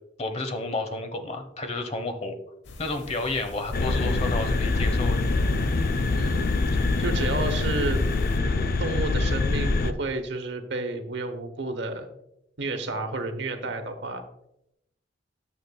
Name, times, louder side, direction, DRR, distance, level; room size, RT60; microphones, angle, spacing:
voice 1, 0.2-2.4 2.8-5.2, left 2 dB, 35° left, 7 dB, 1.0 m, -31 dB
sound 1, 2.6-8.4, left 1 dB, 85° left, 0.9 m, -43 dB
sound 2, 3.7-9.9, left 3 dB, 55° left, 0.4 m, -24 dB
voice 2, 6.1-6.5 7.0-8.0 8.3-12.1 12.6-14.2, right 2 dB, 70° right, 7 dB, 1.0 m, -31 dB
9.9 x 7.2 x 2.3 m, 0.81 s
head